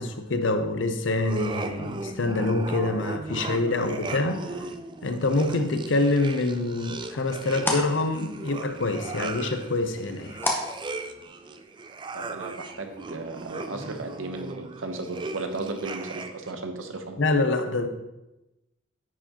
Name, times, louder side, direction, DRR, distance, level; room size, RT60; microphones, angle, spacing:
voice 1, 0.0-4.4 5.0-10.4 17.2-17.9, left 2 dB, 70° left, 8 dB, 0.6 m, -26 dB
sound 1, 1.2-16.6, right 3 dB, 25° right, 0.3 m, -37 dB
sound 2, 6.2-11.6, left 1 dB, 10° left, 0.8 m, -35 dB
voice 2, 12.1-17.2, right 2 dB, 85° right, 6 dB, 0.8 m, -35 dB
9.9 x 4.6 x 2.9 m, 0.98 s
head